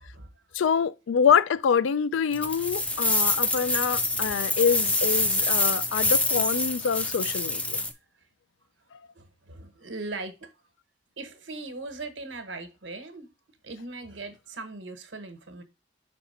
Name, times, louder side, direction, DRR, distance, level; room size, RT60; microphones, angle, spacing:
voice 1, 0.0-0.6 3.5-3.7 4.1-4.2 8.2-8.3 9.1-10.5 11.2-13.3 13.6-15.6, right 3 dB, 80° right, 1.2 m, -40 dB
voice 2, 0.5-7.8, left 7 dB, 85° left, 0.4 m, -25 dB
sound 1, 2.3-7.9, left 2 dB, 5° left, 0.4 m, -26 dB
5.8 x 4.2 x 4.2 m
head